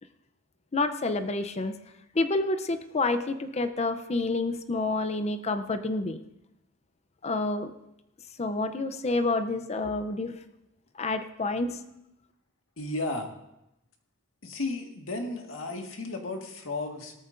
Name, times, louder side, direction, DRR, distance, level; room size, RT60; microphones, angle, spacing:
voice 1, 0.7-1.8 2.1-6.2 7.2-7.7 8.4-10.4 11.0-11.8, left 2 dB, 35° left, 10 dB, 0.6 m, -28 dB
voice 2, 12.8-13.3 14.4-17.1, left 2 dB, 90° left, 3 dB, 1.7 m, -34 dB
18.0 x 13.5 x 2.6 m, 0.86 s
head